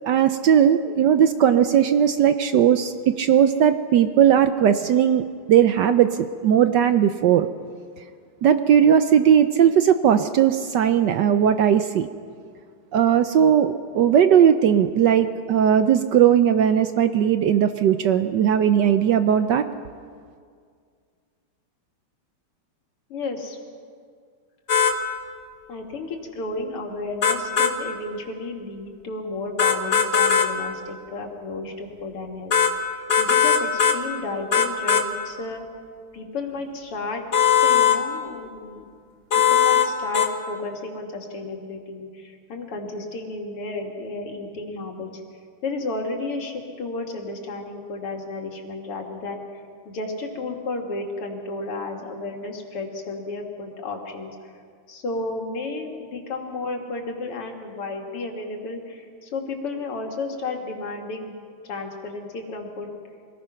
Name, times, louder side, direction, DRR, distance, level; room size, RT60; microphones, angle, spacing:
voice 1, 0.0-5.2 5.5-7.5 8.4-12.1 12.9-19.6, right 9 dB, 70° right, 10 dB, 1.1 m, -18 dB
voice 2, 23.1-23.6 25.7-32.6 32.9-35.6 36.1-37.2 37.6-38.8 39.3-45.2 45.6-54.5 54.9-61.3 61.6-62.9, left 3 dB, 85° left, 2 dB, 3.1 m, -32 dB
sound 1, 24.7-25.0 27.2-27.7 29.6-30.5 32.5-32.7 33.1-34.0 34.5-35.1 37.3-38.0 39.3-39.9 40.1-40.3, left 7 dB, 35° left, 1.1 m, -18 dB
24.5 x 19.0 x 5.8 m, 2.1 s
omnidirectional pair, 2.4 m